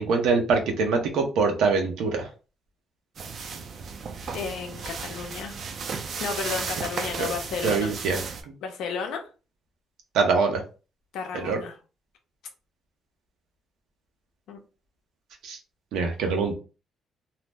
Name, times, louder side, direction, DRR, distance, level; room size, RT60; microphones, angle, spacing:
voice 1, 0.0-2.3 7.2-7.3 7.6-8.2 10.1-10.6 11.3-11.6 15.4-15.6 15.9-16.5, right 4 dB, 85° right, 4 dB, 0.8 m, -24 dB
sound 1, 3.2-8.4, right 5 dB, 40° right, 0.4 m, -34 dB
voice 2, 4.3-5.6 6.2-7.9 8.6-9.2 11.1-11.7 14.5-14.6, left 5 dB, 80° left, 3 dB, 0.7 m, -33 dB
2.8 x 2.0 x 3.4 m, 0.34 s
cardioid pair, 180°, 0 cm